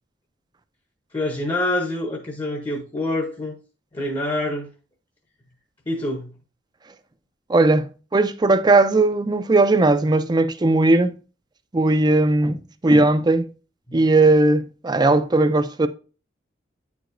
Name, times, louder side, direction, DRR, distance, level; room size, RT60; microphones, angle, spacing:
voice 1, 1.1-3.5 3.9-4.7 5.9-6.3 13.9-14.0, left 1 dB, 25° left, 0.8 m, -26 dB
voice 2, 7.5-11.1 11.7-12.6 12.8-13.5 13.9-15.9, right 2 dB, 20° right, 0.4 m, -18 dB
9.0 x 4.7 x 2.6 m
head